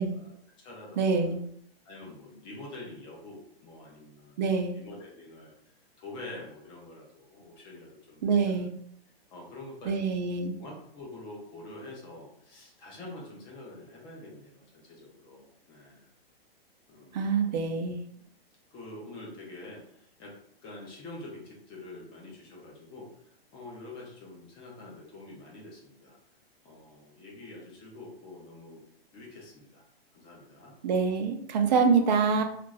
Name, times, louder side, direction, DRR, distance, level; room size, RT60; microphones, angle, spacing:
voice 1, 0.0-1.3 1.8-5.5 6.0-8.7 9.3-10.0 10.6-16.0 16.9-17.2 18.2-18.3 18.7-20.4 20.6-23.1 23.5-26.2 26.6-28.8 29.1-29.8 30.1-30.7, left 2 dB, 15° left, -2 dB, 0.5 m, -46 dB
voice 2, 1.0-1.4 4.4-4.7 8.2-8.7 9.9-10.5 17.1-18.0 30.8-32.4, right 5 dB, 45° right, 5 dB, 0.6 m, -25 dB
2.5 x 2.5 x 3.1 m, 0.67 s
hypercardioid pair, 150°, 31 cm